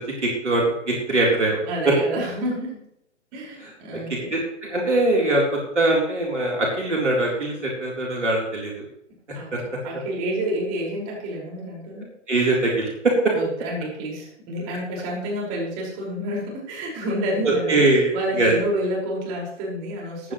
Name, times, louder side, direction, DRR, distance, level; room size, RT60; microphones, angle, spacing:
voice 1, 0.2-1.9 4.3-8.7 9.5-9.6 11.9-13.3 17.4-18.5, right 2 dB, 75° right, -2 dB, 4.2 m, -22 dB
voice 2, 1.7-2.8 3.3-4.3 9.3-9.5 9.8-12.1 13.3-17.8 18.1-20.3, equal, 30° right, -3 dB, 5.6 m, -29 dB
15.0 x 11.5 x 3.3 m, 0.75 s
figure-of-eight pair, 120°, 36 cm